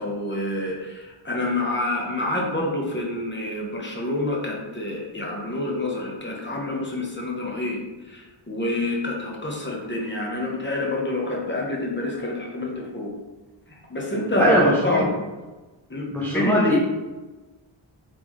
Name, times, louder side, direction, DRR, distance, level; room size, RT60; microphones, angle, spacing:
voice 1, 0.0-7.8 8.0-13.1 13.7-15.1 15.9-16.8, left 1 dB, 25° left, -2 dB, 0.9 m, -27 dB
voice 2, 14.4-14.7 15.0-15.1 16.1-16.8, equal, 5° left, -5 dB, 0.5 m, -20 dB
3.6 x 3.4 x 3.1 m, 1.2 s
wide cardioid pair, 120°, 48 cm